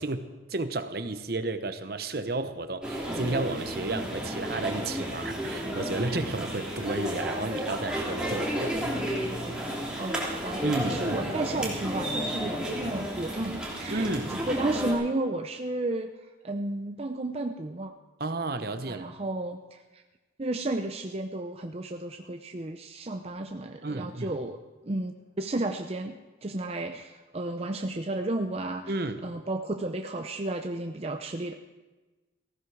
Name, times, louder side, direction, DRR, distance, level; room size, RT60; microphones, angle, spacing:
voice 1, 0.0-8.9 10.6-11.2 13.9-14.4 18.2-19.0 23.8-24.4 28.9-29.2, right 2 dB, 55° right, 9 dB, 0.9 m, -32 dB
sound 1, 2.8-14.9, equal, 5° right, 3.0 m, -32 dB
voice 2, 10.0-16.1 16.4-17.9 18.9-20.0 20.4-24.6 24.8-29.0 29.2-31.5, right 2 dB, 35° right, 5 dB, 0.6 m, -33 dB
18.0 x 15.5 x 4.8 m, 1.2 s
head